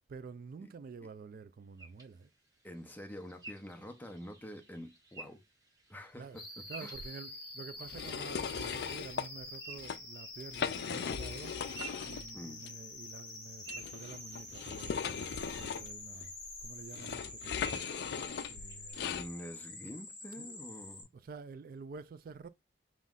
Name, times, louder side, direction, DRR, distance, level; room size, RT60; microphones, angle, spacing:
voice 1, 0.1-2.3 6.2-6.4 6.7-11.6 12.0-16.3 16.6-17.8 18.5-19.3 20.4-20.6 21.1-22.5, right 5 dB, 55° right, 0.3 m, -49 dB
sound 1, 1.8-7.7 9.6-10.4 11.4-12.8 13.2-14.9 15.5-15.7 16.2-16.3 17.6-18.0 18.7-18.9, right 3 dB, 20° right, 1.8 m, -52 dB
voice 2, 2.6-5.4 5.9-6.9 12.3-12.7 19.0-21.1, equal, 10° left, 0.7 m, -47 dB
sound 2, 6.4-21.0, left 2 dB, 30° left, 2.5 m, -47 dB
sound 3, 7.9-9.3 9.7-10.0 10.4-12.3 12.6-12.7 13.7-19.3, left 7 dB, 65° left, 0.4 m, -38 dB
5.4 x 3.1 x 2.4 m
head